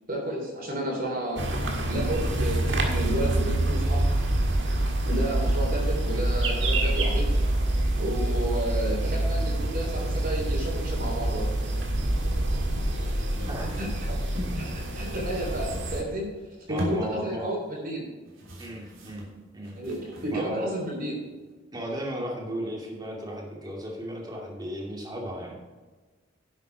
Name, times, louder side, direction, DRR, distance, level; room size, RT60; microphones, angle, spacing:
voice 1, 0.1-1.4 1.9-4.0 5.0-7.2 8.0-11.5 13.0-13.3 13.8-14.2 14.5-16.3 16.7-18.0 19.7-21.2, right 1 dB, 45° right, -2 dB, 3.4 m, -31 dB
sound 1, 1.4-16.0, right 1 dB, 65° right, 1.7 m, -26 dB
sound 2, 13.4-14.7 15.0-16.3 16.7-17.6 18.3-20.7 21.1-21.5, equal, 85° right, 3.2 m, -39 dB
voice 2, 16.7-17.6 18.6-19.3 19.5-19.8 20.3-20.8 21.7-25.6, equal, 20° right, -1 dB, 2.3 m, -35 dB
10.5 x 8.1 x 4.6 m, 1.3 s
head